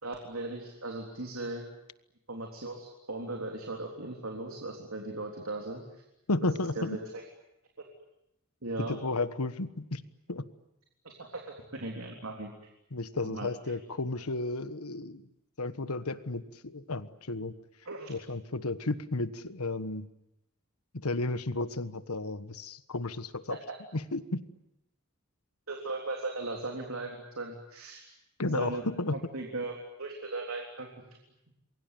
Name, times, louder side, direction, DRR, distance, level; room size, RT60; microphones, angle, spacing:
voice 1, 0.0-1.7 2.3-5.8 6.8-7.2 8.6-9.0 11.0-11.4 11.7-12.5 13.2-13.5 17.9-18.1 25.7-28.0 28.5-28.8 29.1-30.9, right 2 dB, 70° right, 1 dB, 3.6 m, -37 dB
voice 2, 6.3-7.0 8.8-10.0 10.3-10.5 12.9-15.2 15.6-17.6 18.1-20.1 20.9-23.6 23.9-24.4 28.4-29.2, left 2 dB, 85° left, 13 dB, 1.4 m, -33 dB
28.0 x 22.5 x 9.3 m, 0.85 s
head